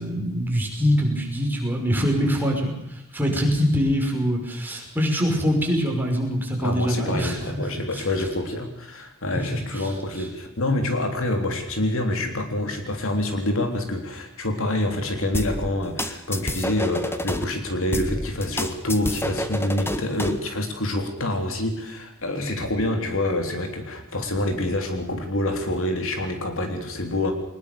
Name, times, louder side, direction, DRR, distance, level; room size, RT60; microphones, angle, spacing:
voice 1, 0.0-7.4 9.7-9.9 10.2-10.3 22.4-22.6, equal, 10° right, 0 dB, 5.6 m, -24 dB
voice 2, 6.6-27.3, left 1 dB, 65° left, 4 dB, 3.6 m, -26 dB
sound 1, 15.3-17.4 17.9-20.4, left 1 dB, 10° left, 1.6 m, -28 dB
23.0 x 21.0 x 7.0 m, 0.82 s
head